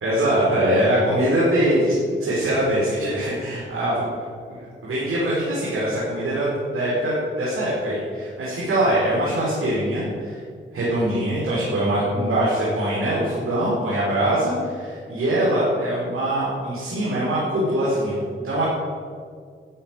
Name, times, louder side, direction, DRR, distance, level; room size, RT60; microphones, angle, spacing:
voice 1, 0.0-1.9 2.2-4.0 4.8-6.5 6.7-10.4 10.7-18.6, right 1 dB, 90° right, -8 dB, 5.1 m, -22 dB
14.0 x 9.7 x 9.3 m, 2.1 s
wide cardioid pair, 115°, 21 cm